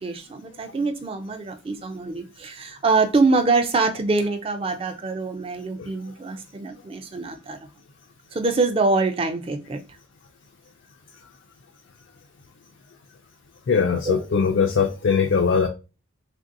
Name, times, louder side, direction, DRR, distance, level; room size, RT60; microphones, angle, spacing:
voice 1, 0.0-7.6 8.3-9.8 14.0-14.2, right 3 dB, 25° right, 0.3 m, -24 dB
voice 2, 13.7-15.7, left 5 dB, 60° left, 0.3 m, -20 dB
3.3 x 2.5 x 2.5 m
head